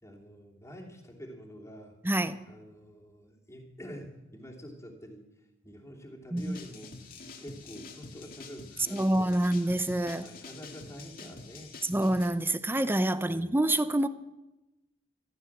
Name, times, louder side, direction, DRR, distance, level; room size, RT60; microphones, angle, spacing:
voice 1, 0.0-2.0 2.4-5.3 5.6-7.0 7.4-9.4 10.2-11.7 13.2-13.5, equal, 15° left, 2.9 m, -47 dB
voice 2, 2.0-2.5 6.3-6.6 8.9-10.3 11.8-14.1, right 1 dB, 10° right, 0.7 m, -27 dB
sound 1, 6.4-12.3, left 3 dB, 55° left, 1.9 m, -47 dB
14.5 x 13.0 x 7.3 m
head